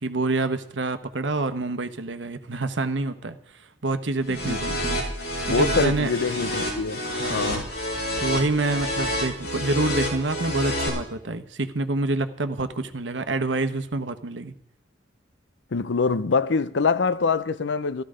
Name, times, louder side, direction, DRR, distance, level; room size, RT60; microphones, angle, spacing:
voice 1, 0.0-3.4 3.8-5.0 5.5-6.1 7.1-7.6 8.2-14.5, right 2 dB, 85° right, 1.1 m, -27 dB
voice 2, 4.3-4.8 5.4-7.0 7.3-7.7 15.7-18.0, left 4 dB, 80° left, 0.6 m, -24 dB
sound 1, 4.3-10.9, left 1 dB, 60° left, 6.7 m, -28 dB
14.5 x 13.0 x 5.0 m
head